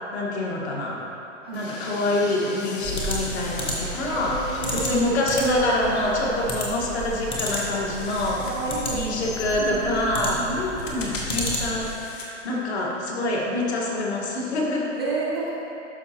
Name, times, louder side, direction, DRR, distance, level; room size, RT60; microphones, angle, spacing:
voice 1, 0.1-1.0 1.5-4.4 4.7-8.4 8.9-14.9, left 1 dB, 60° left, -3 dB, 1.7 m, -26 dB
Train, 1.5-11.9, left 3 dB, 45° left, 1.0 m, -41 dB
sound 1, 2.8-12.0, equal, 15° left, 0.8 m, -32 dB
voice 2, 4.0-5.3 6.4-6.6 8.4-10.6 14.9-15.5, right 3 dB, 20° right, -6 dB, 0.4 m, -31 dB
sound 2, 7.5-9.4 9.6-12.5 13.0-13.1, left 2 dB, 75° left, 1.4 m, -39 dB
12.0 x 5.1 x 2.9 m, 2.9 s
hypercardioid pair, 150°, 38 cm